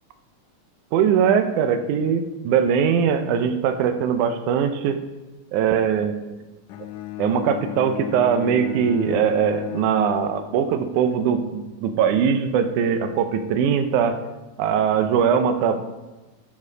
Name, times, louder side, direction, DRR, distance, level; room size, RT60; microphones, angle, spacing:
voice 1, 0.9-5.0 5.5-6.2 7.2-14.2 14.6-15.8, right 7 dB, 80° right, 8 dB, 2.0 m, -21 dB
Bowed string instrument, 6.7-11.0, left 13 dB, 80° left, 2.1 m, -34 dB
11.5 x 4.7 x 4.9 m, 1.1 s
omnidirectional pair, 3.8 m